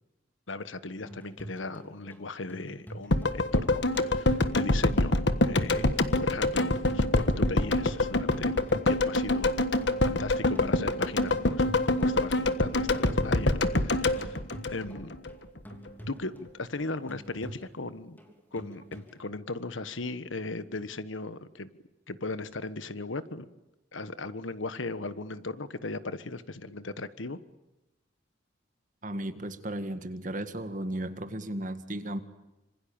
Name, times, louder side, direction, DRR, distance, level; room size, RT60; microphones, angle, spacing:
voice 1, 0.5-5.2 5.4-8.5 8.8-9.6 10.0-14.4 14.7-15.2 16.1-18.2 18.5-21.7 22.1-23.5 23.9-27.4, left 2 dB, 85° left, 1.4 m, -37 dB
sound 1, 1.0-19.2, right 1 dB, 10° left, 3.2 m, -48 dB
sound 2, 3.1-15.3 15.6-15.7, left 2 dB, 65° left, 1.5 m, -26 dB
voice 2, 29.0-32.2, right 1 dB, 40° right, 1.9 m, -35 dB
26.5 x 26.0 x 8.8 m
head